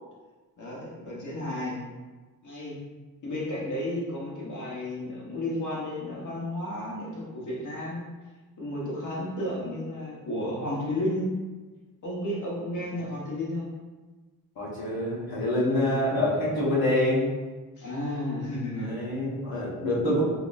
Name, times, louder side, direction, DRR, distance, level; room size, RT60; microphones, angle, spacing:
voice 1, 0.6-1.8 2.4-2.8 3.2-8.0 8.6-11.4 12.0-13.7 15.6-15.9 17.8-18.9, left 1 dB, 55° left, -5 dB, 1.1 m, -32 dB
voice 2, 14.6-17.3 18.7-20.2, left 1 dB, 85° left, -6 dB, 1.2 m, -26 dB
3.9 x 2.9 x 2.5 m, 1.3 s
wide cardioid pair, 165°, 35 cm